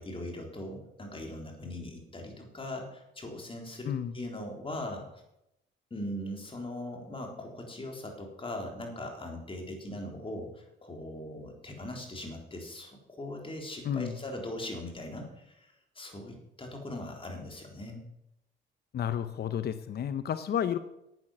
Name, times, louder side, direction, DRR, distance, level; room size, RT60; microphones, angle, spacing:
voice 1, 0.0-5.2 5.9-18.0, left 1 dB, 25° left, 2 dB, 3.8 m, -40 dB
voice 2, 3.9-4.2 13.8-14.1 18.9-20.8, left 9 dB, 55° left, 11 dB, 0.8 m, -31 dB
10.5 x 8.8 x 7.3 m, 0.83 s
cardioid pair, 90°, 20 cm